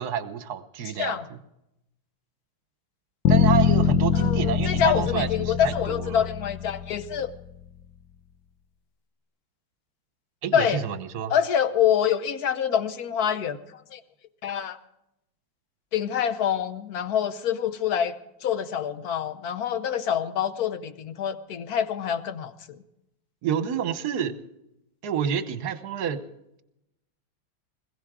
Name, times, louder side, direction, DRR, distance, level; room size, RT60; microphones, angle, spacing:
voice 1, 0.0-1.4 3.3-6.2 10.4-11.3 23.4-24.4 25.0-26.2, right 8 dB, 55° right, 11 dB, 1.4 m, -29 dB
sound 1, 3.3-7.4, left 8 dB, 75° left, 1.5 m, -23 dB
voice 2, 4.1-7.3 10.5-10.8 11.3-14.0 14.4-14.8 15.9-18.1 18.4-22.8, left 9 dB, 60° left, 11 dB, 1.1 m, -26 dB
21.0 x 16.5 x 3.7 m, 0.83 s
omnidirectional pair, 2.3 m